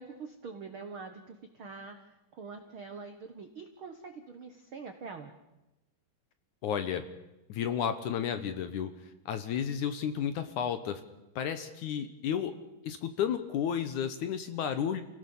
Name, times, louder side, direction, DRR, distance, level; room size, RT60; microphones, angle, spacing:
voice 1, 0.0-2.0 2.3-5.3, right 4 dB, 90° right, 7 dB, 1.1 m, -44 dB
voice 2, 6.6-7.0 7.5-8.9 9.3-11.0 11.4-12.5 12.8-15.0, left 8 dB, 70° left, 10 dB, 2.0 m, -32 dB
29.0 x 17.5 x 7.2 m, 0.97 s
omnidirectional pair, 4.5 m